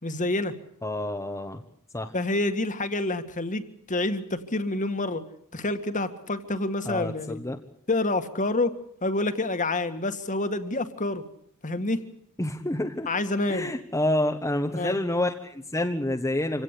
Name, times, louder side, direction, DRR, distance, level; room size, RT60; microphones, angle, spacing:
voice 1, 0.0-0.6 2.1-5.2 5.5-7.4 7.9-8.7 9.0-11.2 11.6-12.0 13.1-13.7 14.7-15.0, left 2 dB, 35° left, 9 dB, 2.0 m, -28 dB
voice 2, 0.8-1.6 1.9-2.1 6.8-7.6 12.4-13.1 13.5-16.6, left 1 dB, 15° left, 5 dB, 1.2 m, -28 dB
27.0 x 17.0 x 8.4 m, 0.70 s
head